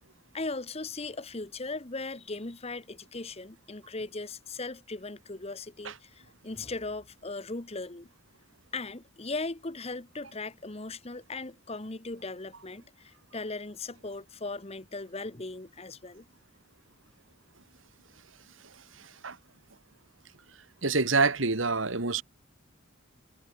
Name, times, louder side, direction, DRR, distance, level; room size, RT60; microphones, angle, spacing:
voice 1, 0.3-8.1 8.7-16.3, left 3 dB, 30° left, 1.3 m, -38 dB
voice 2, 19.0-19.4 20.8-22.2, right 4 dB, 75° right, 2.0 m, -27 dB
head